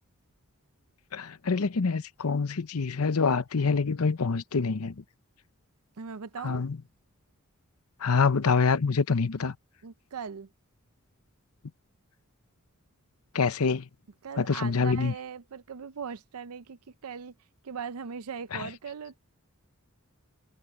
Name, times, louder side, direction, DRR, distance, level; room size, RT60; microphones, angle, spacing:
voice 1, 1.1-5.0 6.4-6.8 8.0-9.6 13.3-13.9 14.4-15.1 18.5-18.7, left 4 dB, 80° left, 0.8 m, -26 dB
voice 2, 6.0-6.6 9.8-10.5 14.2-17.3 17.6-19.2, right 6 dB, 80° right, 0.6 m, -39 dB
head